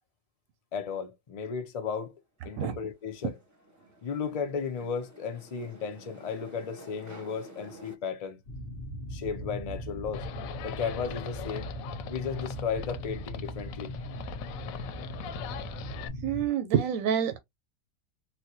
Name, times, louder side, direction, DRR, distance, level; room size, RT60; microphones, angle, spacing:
voice 1, 0.7-2.1 2.4-3.3 4.0-8.4 9.1-10.3 10.6-11.7 12.1-13.9, left 6 dB, 65° left, 0.3 m, -34 dB
sound 1, 2.5-8.0, right 1 dB, 15° right, 0.8 m, -51 dB
sound 2, 8.5-16.5, equal, 45° left, 0.9 m, -39 dB
Livestock farm animals working animals, 10.1-16.1, left 9 dB, 90° left, 1.0 m, -42 dB
voice 2, 16.2-17.4, right 9 dB, 90° right, 1.0 m, -27 dB
4.1 x 2.2 x 2.7 m
omnidirectional pair, 1.4 m